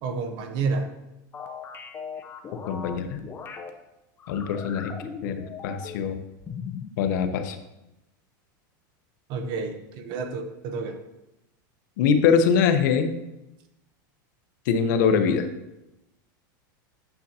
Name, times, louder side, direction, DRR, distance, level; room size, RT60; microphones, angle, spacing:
voice 1, 0.0-0.9 9.3-11.0, right 4 dB, 45° right, 7 dB, 0.9 m, -30 dB
sound 1, 1.3-3.7 4.2-6.1 6.4-7.0, left 6 dB, 20° left, 0.7 m, -38 dB
voice 2, 2.6-3.2 4.3-4.9 5.2-6.2 7.0-7.6 12.0-13.1 14.7-15.5, left 6 dB, 65° left, 8 dB, 0.8 m, -23 dB
9.1 x 6.6 x 2.8 m, 0.94 s
supercardioid pair, 150°, 11 cm